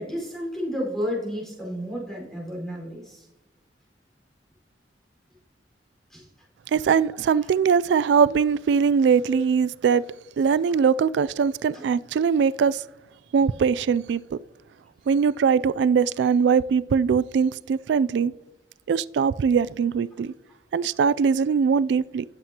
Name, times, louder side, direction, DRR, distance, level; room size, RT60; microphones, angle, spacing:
voice 1, 0.0-3.3 6.1-6.3 7.4-7.5 9.3-9.4 11.7-11.9, equal, ahead, 4.5 m, -32 dB
voice 2, 6.7-10.1 10.4-12.8 13.3-14.4 15.1-18.3 18.9-20.3 20.7-22.2, right 6 dB, 75° right, 0.3 m, -21 dB
18.5 x 7.6 x 2.9 m
head